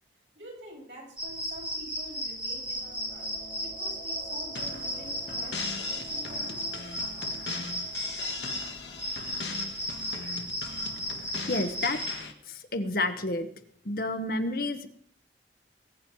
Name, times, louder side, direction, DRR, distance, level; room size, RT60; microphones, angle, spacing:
voice 1, 0.3-6.7, right 1 dB, 85° right, -3 dB, 7.6 m, -47 dB
sound 1, 1.2-12.1, equal, 5° right, 3.3 m, -35 dB
sound 2, 2.3-10.9, right 1 dB, 20° left, 6.0 m, -51 dB
sound 3, 4.6-12.3, left 4 dB, 85° left, 1.5 m, -40 dB
voice 2, 11.5-12.0 12.5-13.5 13.8-14.9, left 2 dB, 55° left, 8 dB, 1.1 m, -30 dB
20.5 x 9.1 x 4.7 m, 0.65 s
head